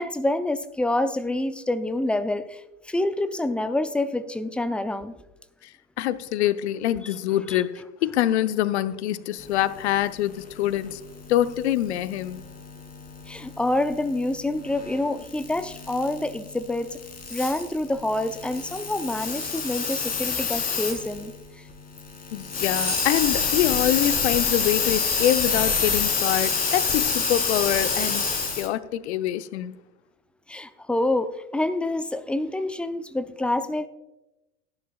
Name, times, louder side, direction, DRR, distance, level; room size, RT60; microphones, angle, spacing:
voice 1, 0.0-5.1 7.0-8.3 13.3-17.0 17.3-21.3 30.5-33.9, left 1 dB, 5° left, 0.5 m, -27 dB
voice 2, 5.6-11.0 11.3-12.4 22.3-28.3 28.6-29.8, left 12 dB, 60° left, 0.8 m, -25 dB
sound 1, 11.1-21.3 21.7-21.8 22.0-28.7, left 5 dB, 25° left, 3.4 m, -27 dB
17.5 x 10.5 x 2.4 m
figure-of-eight pair, 85°, 37 cm